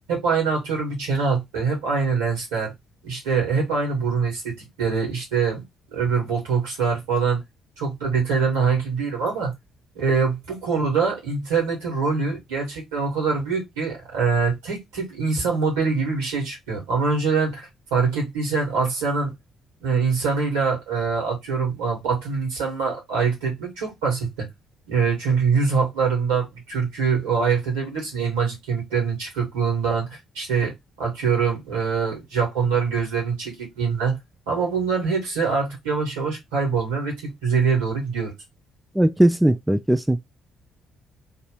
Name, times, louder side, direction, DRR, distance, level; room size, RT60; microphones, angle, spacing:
voice 1, 0.1-2.7 3.0-5.6 5.9-7.4 7.8-9.5 9.9-19.3 19.8-24.5 24.9-30.7 31.0-34.2 34.5-38.3, right 5 dB, 75° right, 2.0 m, -24 dB
voice 2, 39.0-40.2, right 1 dB, 10° right, 0.3 m, -19 dB
3.3 x 2.7 x 3.3 m
figure-of-eight pair, 45°, 0 cm